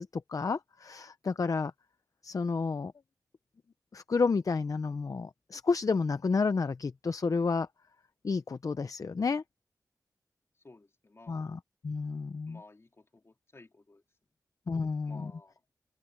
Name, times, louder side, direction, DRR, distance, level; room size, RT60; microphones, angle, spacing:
voice 1, 0.0-1.7 2.2-2.9 3.9-7.7 8.2-9.4 11.3-12.6 14.7-15.3, left 4 dB, 55° left, 0.5 m, -31 dB
voice 2, 10.6-11.5 12.5-14.0 15.1-15.6, left 2 dB, 40° left, 2.6 m, -55 dB
open air
wide cardioid pair, 100°, 7 cm